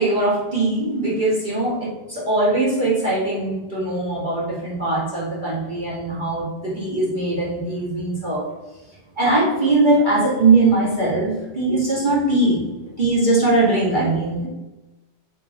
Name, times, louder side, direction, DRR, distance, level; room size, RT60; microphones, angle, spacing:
voice 1, 0.0-1.8 2.1-8.4 9.2-12.7 13.0-14.5, right 2 dB, 20° right, -9 dB, 1.5 m, -20 dB
9.1 x 3.9 x 3.9 m, 1.1 s
omnidirectional pair, 4.2 m